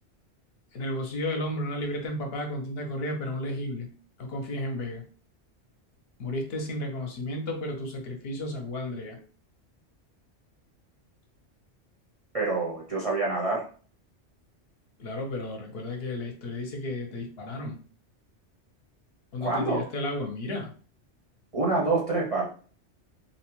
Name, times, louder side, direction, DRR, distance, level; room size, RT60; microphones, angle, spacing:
voice 1, 0.7-3.9 4.2-5.0 6.2-9.2 15.0-17.8 19.3-20.7, left 1 dB, 65° left, 3 dB, 0.8 m, -33 dB
voice 2, 12.3-13.7 19.4-19.8 21.5-22.5, right 3 dB, 40° right, -4 dB, 0.5 m, -26 dB
2.7 x 2.1 x 2.9 m, 0.41 s
omnidirectional pair, 1.2 m